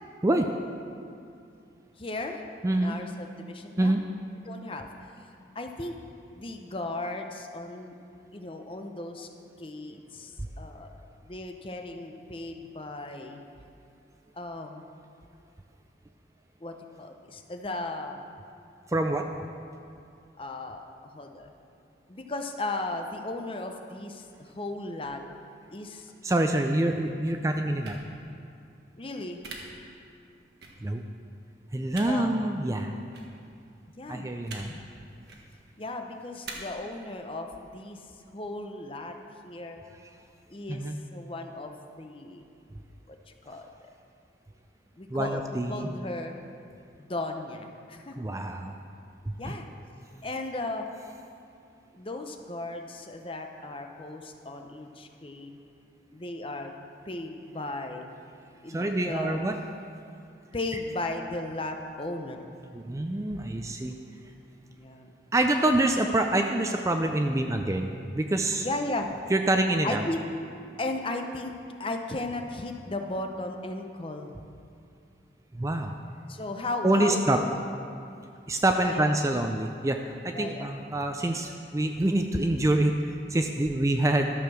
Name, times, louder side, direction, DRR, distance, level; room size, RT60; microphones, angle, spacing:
voice 1, 2.0-4.0 4.5-4.9 5.5-6.0 6.3-7.9 8.3-9.3 9.6-10.9 11.2-13.4 14.3-14.8 16.6-18.2 20.4-21.5 22.1-25.2 25.7-26.1 29.0-29.4 32.0-32.3 34.0-34.3 34.7-34.8 35.8-37.5 37.7-38.0 38.3-39.2 39.4-39.8 40.5-42.4 43.1-43.2 43.5-43.7 45.0-46.4 47.0-48.2 49.4-49.7 50.2-50.9 51.9-55.5 56.1-56.7 57.1-58.1 58.6-59.4 60.5-62.5 64.7-65.1 68.6-69.2 69.8-70.2 70.8-71.5 71.8-74.3 76.3-77.5 78.8-79.1 80.3-80.8, left 2 dB, 30° left, 4 dB, 0.7 m, -36 dB
voice 2, 2.6-3.0 3.8-4.0 18.9-19.3 26.2-28.0 30.8-31.0 31.7-32.9 34.1-34.7 40.7-41.0 45.1-45.9 48.2-48.7 49.5-49.6 58.7-59.6 62.7-63.9 65.3-68.7 69.3-70.1 75.5-75.9 76.8-77.4 78.5-84.3, right 1 dB, 15° right, 5 dB, 0.4 m, -26 dB
sound 1, 27.8-28.0 29.4-29.6 30.6-30.7 31.9-32.1 33.1-33.3 34.4-34.6 35.2-35.4 36.4-36.5, right 4 dB, 60° right, 1.4 m, -41 dB
12.0 x 6.7 x 6.2 m, 2.5 s
head